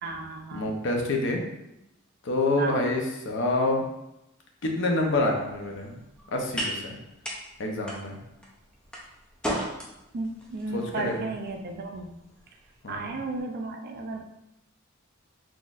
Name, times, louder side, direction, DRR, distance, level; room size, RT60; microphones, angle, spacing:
voice 1, 0.0-0.7 2.6-3.0 10.1-12.1 12.9-14.2, right 3 dB, 50° right, 4 dB, 0.4 m, -34 dB
voice 2, 0.5-1.4 2.2-3.8 4.6-6.0 6.3-6.9 7.6-8.2 10.7-11.3 12.8-13.2, left 2 dB, 60° left, 1 dB, 0.6 m, -27 dB
sound 1, 5.0-13.4, equal, 5° left, 0.5 m, -39 dB
4.0 x 3.0 x 2.4 m, 0.88 s
head